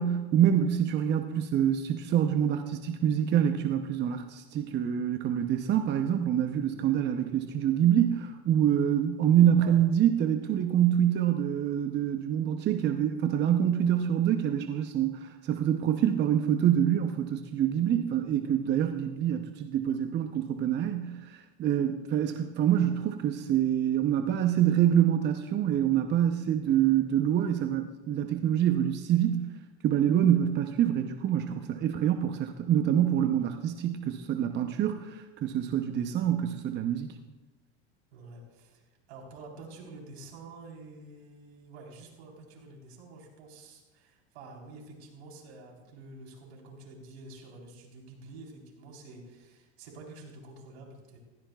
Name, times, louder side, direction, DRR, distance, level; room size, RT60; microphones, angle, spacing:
voice 1, 0.0-29.5 29.8-37.1, right 10 dB, 35° right, 6 dB, 0.7 m, -26 dB
voice 2, 38.1-38.8 39.1-51.2, right 2 dB, 75° right, 0 dB, 4.0 m, -48 dB
16.0 x 14.5 x 2.4 m, 1.2 s
supercardioid pair, 110°, 32 cm